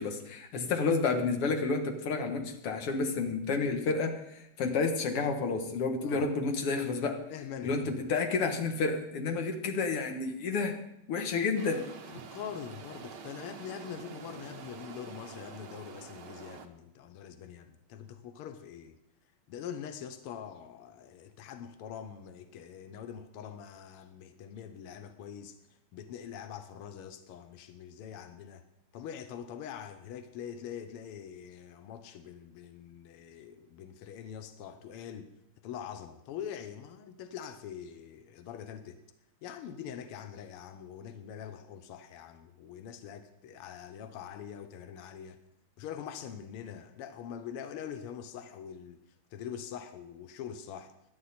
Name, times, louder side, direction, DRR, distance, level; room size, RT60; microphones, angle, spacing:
voice 1, 0.0-7.2 7.6-10.8 11.1-11.8, left 4 dB, 55° left, 5 dB, 2.1 m, -30 dB
voice 2, 7.3-8.1 12.1-19.0 19.5-25.6 25.9-28.6 28.9-35.3 35.6-39.0 39.4-45.4 45.8-49.0 49.3-50.9, left 8 dB, 75° left, 9 dB, 1.3 m, -44 dB
sound 1, 11.6-16.7, right 5 dB, 70° right, 1.0 m, -47 dB
18.0 x 11.5 x 4.3 m, 0.82 s
omnidirectional pair, 3.5 m